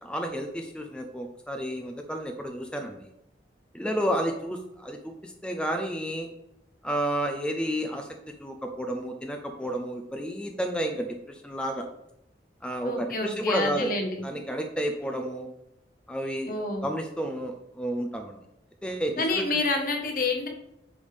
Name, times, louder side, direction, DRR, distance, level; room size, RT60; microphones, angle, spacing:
voice 1, 0.0-3.1 3.7-6.3 6.8-8.1 8.4-11.9 12.6-13.9 14.2-15.5 16.1-18.4 18.8-19.6, equal, 5° left, 4 dB, 0.5 m, -31 dB
voice 2, 12.8-14.2 16.5-16.9 19.2-20.5, left 3 dB, 50° left, 2 dB, 1.4 m, -28 dB
9.5 x 3.5 x 5.1 m, 0.82 s
head